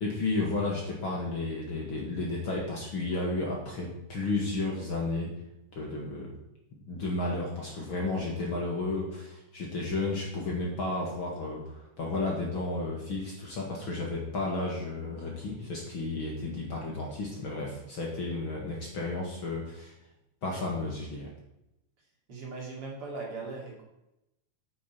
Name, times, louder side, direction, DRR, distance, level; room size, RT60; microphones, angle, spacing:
voice 1, 0.0-5.3 5.8-6.3 6.9-19.9 20.4-21.3, left 2 dB, 45° left, -2 dB, 2.2 m, -32 dB
voice 2, 22.3-23.8, right 3 dB, 45° right, -3 dB, 3.2 m, -39 dB
9.2 x 9.0 x 4.4 m, 0.88 s
omnidirectional pair, 3.5 m